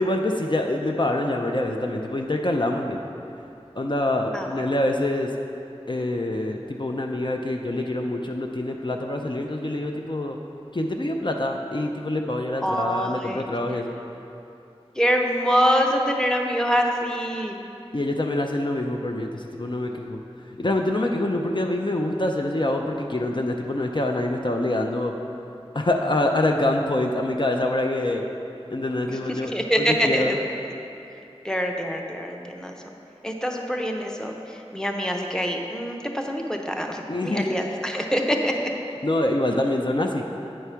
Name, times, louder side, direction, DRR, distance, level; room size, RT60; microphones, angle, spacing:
voice 1, 0.0-3.0 3.8-5.3 5.9-10.4 10.7-14.0 17.9-20.2 20.6-25.1 25.7-28.2 28.7-29.5 29.9-30.3 37.1-37.5 39.0-40.2, left 1 dB, 45° left, 2 dB, 0.5 m, -25 dB
voice 2, 12.6-13.4 15.0-17.6 29.1-30.4 31.4-32.8 33.2-38.7, equal, 5° left, 2 dB, 0.7 m, -25 dB
8.9 x 4.7 x 5.7 m, 2.7 s
wide cardioid pair, 40°, 11 cm